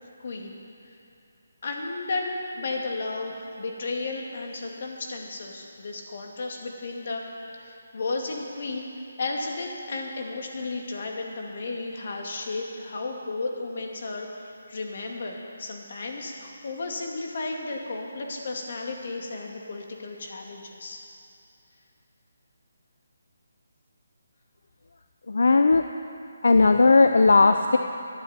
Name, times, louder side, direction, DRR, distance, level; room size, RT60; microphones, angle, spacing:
voice 1, 0.2-0.5 1.6-7.3 7.6-8.9 9.2-21.0, left 3 dB, 55° left, 1 dB, 2.3 m, -33 dB
voice 2, 25.3-25.8 26.4-27.8, left 3 dB, 75° left, 7 dB, 0.6 m, -17 dB
20.0 x 11.5 x 4.4 m, 2.7 s
hypercardioid pair, 165°, 0 cm